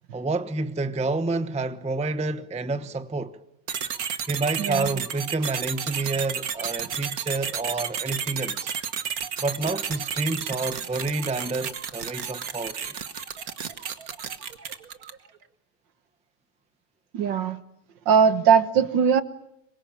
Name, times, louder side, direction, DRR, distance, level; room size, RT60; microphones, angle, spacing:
voice 1, 0.1-3.4 4.3-8.7 9.4-13.0, right 3 dB, 5° right, 0.6 m, -29 dB
sound 1, 3.7-15.3, right 7 dB, 55° right, 1.7 m, -32 dB
voice 2, 4.6-4.9 17.1-17.6 18.1-19.2, right 6 dB, 80° right, 1.9 m, -20 dB
26.0 x 23.0 x 8.9 m
omnidirectional pair, 2.0 m